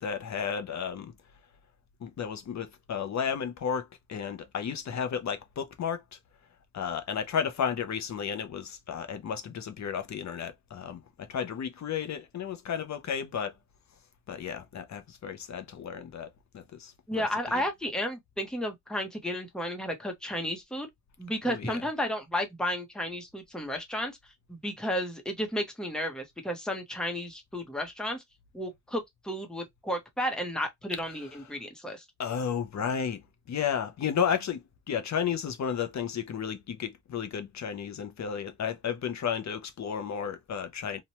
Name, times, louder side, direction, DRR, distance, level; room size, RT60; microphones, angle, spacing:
voice 1, 0.0-1.1 2.0-6.2 6.7-13.6 14.3-17.6 21.4-21.8 32.2-41.0, left 7 dB, 70° left, 0.5 m, -33 dB
voice 2, 17.1-20.9 21.2-24.2 24.5-28.2 28.5-32.0, equal, ahead, 0.7 m, -33 dB
2.9 x 2.1 x 2.8 m
wide cardioid pair, 130°, 29 cm